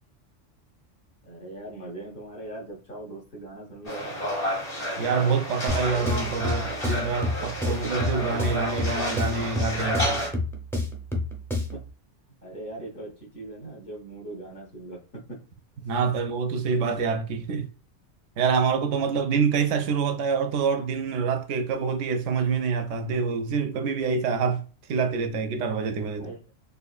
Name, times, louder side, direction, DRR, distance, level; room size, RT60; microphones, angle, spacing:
voice 1, 1.2-4.2 5.9-6.0 7.8-8.2 11.7-11.8 12.4-15.4 26.2-26.4, right 2 dB, 50° left, 1.2 m, -40 dB
sound 1, 3.8-10.3, equal, 35° left, 1.4 m, -31 dB
voice 2, 5.0-10.2 15.8-17.7 18.4-24.6 24.9-26.3, right 5 dB, 80° right, 0.9 m, -26 dB
sound 2, 5.7-11.9, left 2 dB, 5° left, 0.4 m, -30 dB
4.2 x 2.6 x 2.4 m
omnidirectional pair, 1.3 m